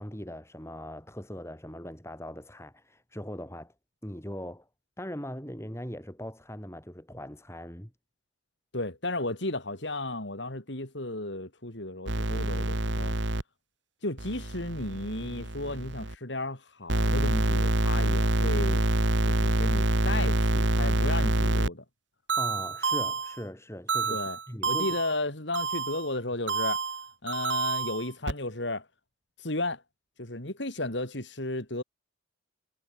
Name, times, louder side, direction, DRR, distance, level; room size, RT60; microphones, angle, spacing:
voice 1, 0.0-3.7 4.0-4.7 5.0-7.9 22.3-25.0, equal, 15° left, 7.1 m, -40 dB
voice 2, 8.7-13.1 14.0-18.8 19.2-21.8 24.1-24.4 24.7-26.8 27.2-28.9 29.4-29.8 30.2-31.8, left 2 dB, 70° left, 4.6 m, -34 dB
sound 1, 12.1-13.4 14.2-16.1 16.9-21.7 22.3-23.4 23.9-25.2 25.5-26.1 26.5-28.3, right 2 dB, 70° right, 2.1 m, -27 dB
head